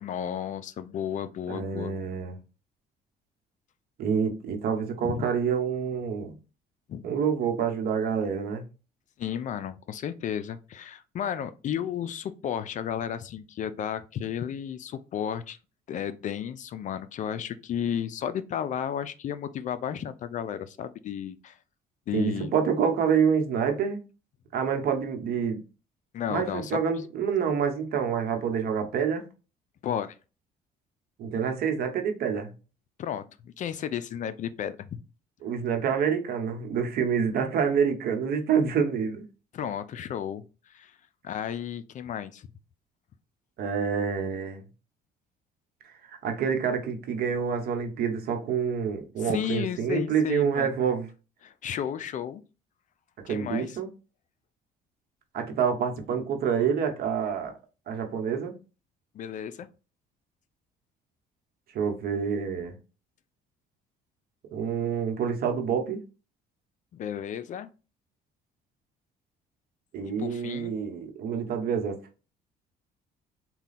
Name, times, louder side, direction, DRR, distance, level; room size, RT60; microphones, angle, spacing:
voice 1, 0.0-1.9 5.0-5.3 6.9-7.0 9.2-15.6 15.9-21.6 22.1-22.5 26.1-26.8 29.8-30.2 33.0-35.0 39.5-41.0 41.2-42.5 49.2-50.7 51.4-52.4 53.3-53.8 59.1-59.7 66.9-67.7 70.2-70.8, left 9 dB, 50° left, 0.4 m, -33 dB
voice 2, 1.5-2.3 4.0-6.3 7.0-8.6 22.1-24.0 24.5-25.6 26.3-29.2 31.2-32.5 35.4-39.2 43.6-44.6 45.8-51.1 53.2-53.9 55.3-57.5 57.9-58.5 61.7-62.7 64.5-66.0 69.9-72.0, right 7 dB, 65° right, 1.0 m, -27 dB
4.1 x 2.2 x 4.0 m
cardioid pair, 110°, 17 cm